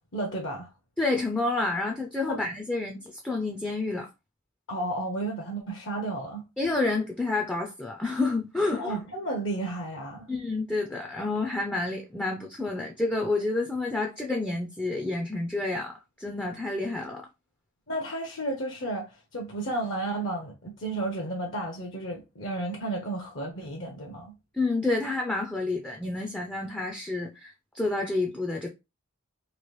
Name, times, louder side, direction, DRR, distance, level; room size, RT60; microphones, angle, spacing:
voice 1, 0.1-0.7 2.3-2.4 4.7-6.4 8.7-10.3 17.9-24.3, right 2 dB, 60° left, 0.7 m, -32 dB
voice 2, 1.0-4.1 6.6-9.0 10.3-17.3 24.5-28.7, left 2 dB, 5° left, 0.3 m, -29 dB
3.0 x 2.5 x 3.1 m
head